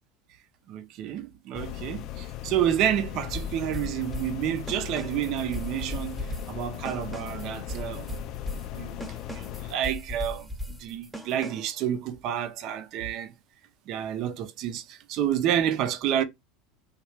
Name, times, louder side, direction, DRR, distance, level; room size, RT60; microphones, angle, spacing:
voice 1, 0.7-8.1 8.7-13.3 13.9-16.2, right 10 dB, 55° right, 0.6 m, -29 dB
sound 1, 1.5-9.8, left 13 dB, 55° left, 0.4 m, -38 dB
sound 2, 3.3-11.8, left 1 dB, ahead, 1.0 m, -38 dB
3.1 x 2.4 x 3.3 m
hypercardioid pair, 90°, 0 cm